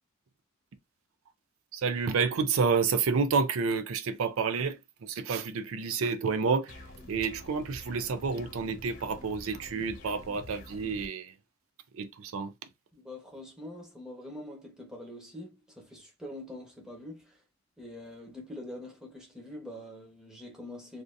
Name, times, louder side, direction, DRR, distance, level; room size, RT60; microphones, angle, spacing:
voice 1, 1.7-11.4 11.9-12.5, right 5 dB, 75° right, 0.4 m, -29 dB
sound 1, 6.7-11.1, left 1 dB, 55° left, 1.1 m, -47 dB
voice 2, 12.9-17.4 17.8-21.0, left 1 dB, 5° right, 1.0 m, -44 dB
3.4 x 2.6 x 2.5 m
head